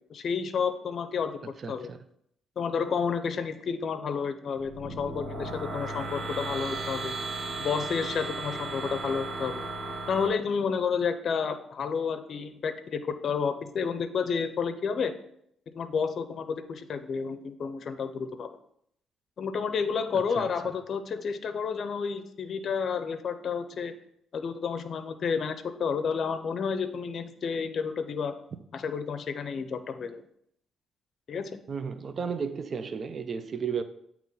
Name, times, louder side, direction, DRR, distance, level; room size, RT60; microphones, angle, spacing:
voice 1, 0.1-1.9 2.6-7.1 7.6-9.6 10.1-15.1 15.7-18.5 19.4-23.9 24.3-28.3 28.7-30.2 31.3-31.5, left 6 dB, 55° left, 0.5 m, -30 dB
voice 2, 1.6-2.0 20.4-20.7 31.7-33.8, right 6 dB, 45° right, 0.4 m, -33 dB
sound 1, 4.6-10.3, right 2 dB, 65° right, 1.4 m, -35 dB
8.7 x 3.0 x 3.9 m
cardioid pair, 90°, 0 cm